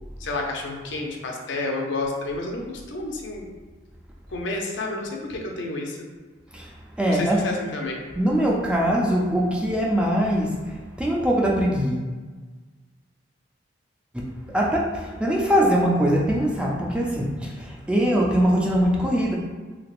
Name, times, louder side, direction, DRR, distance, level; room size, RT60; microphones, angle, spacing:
voice 1, 0.2-3.5 4.3-6.1 7.1-8.0, left 2 dB, 75° left, 1 dB, 0.5 m, -30 dB
voice 2, 6.5-7.4 8.1-12.1 14.5-19.3, equal, 5° right, -3 dB, 0.3 m, -22 dB
3.3 x 2.8 x 2.4 m, 1.4 s
head